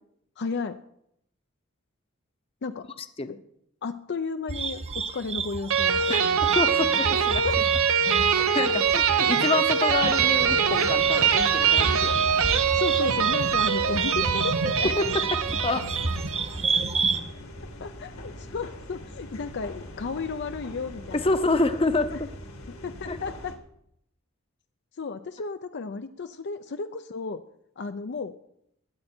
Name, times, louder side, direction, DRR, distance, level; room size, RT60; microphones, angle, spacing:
voice 1, 0.4-0.8 2.6-2.9 3.2-3.4 3.8-6.6 7.4-7.6 12.5-14.9 17.8-21.3 22.1-22.2 22.7-23.5 24.9-27.4 27.8-28.3, left 4 dB, 55° left, 9 dB, 0.5 m, -33 dB
sound 1, 4.5-17.2, right 4 dB, 30° right, 0.8 m, -31 dB
sound 2, 5.7-16.4, right 7 dB, 90° right, 0.9 m, -23 dB
voice 2, 6.1-7.4 8.3-12.3 14.8-15.9 21.1-22.1 23.1-23.2, left 3 dB, 25° left, 10 dB, 0.8 m, -27 dB
sound 3, 9.9-23.6, left 1 dB, 80° left, 2.3 m, -41 dB
20.0 x 8.6 x 4.4 m, 0.75 s
head